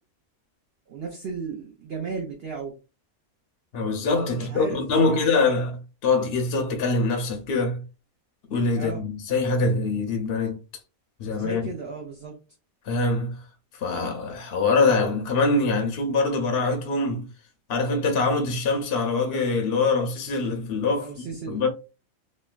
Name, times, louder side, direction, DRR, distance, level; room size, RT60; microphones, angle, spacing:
voice 1, 0.9-2.7 4.3-5.2 8.7-9.0 11.3-12.3 21.0-21.7, right 5 dB, 60° right, 0.7 m, -35 dB
voice 2, 3.7-7.8 8.5-10.6 11.2-11.6 12.9-13.4 13.7-17.3 17.7-21.1 21.5-21.7, left 3 dB, 60° left, 0.6 m, -24 dB
3.0 x 2.2 x 2.3 m
omnidirectional pair, 1.5 m